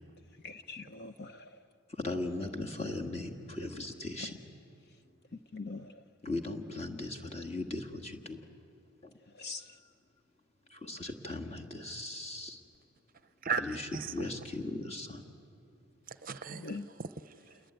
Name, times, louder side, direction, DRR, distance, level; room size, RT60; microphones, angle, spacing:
voice 1, 0.4-1.5 5.5-5.9 9.4-9.6 16.6-16.9, left 3 dB, 45° left, 0.7 m, -42 dB
voice 2, 1.9-4.5 6.2-8.4 9.0-9.1 9.7-9.8 10.7-12.6 13.6-15.3, left 2 dB, 30° left, 1.7 m, -38 dB
voice 3, 13.4-14.3 16.1-17.6, right 5 dB, 40° right, 0.7 m, -37 dB
28.5 x 22.0 x 9.2 m
head